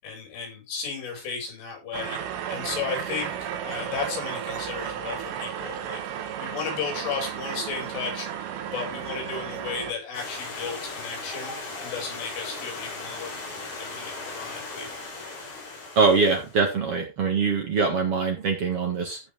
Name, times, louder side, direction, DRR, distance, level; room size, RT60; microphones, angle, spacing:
voice 1, 0.0-2.2 2.5-6.0 6.4-8.3 8.6-14.9, left 5 dB, 75° left, 0 dB, 9.2 m, -34 dB
sound 1, 1.9-9.9, right 9 dB, 85° right, 4.2 m, -33 dB
Stream, 10.1-16.6, left 3 dB, 50° left, 7.1 m, -37 dB
voice 2, 15.9-19.2, right 4 dB, 65° right, 3 dB, 1.4 m, -23 dB
16.0 x 5.8 x 3.8 m, 0.26 s
omnidirectional pair, 5.6 m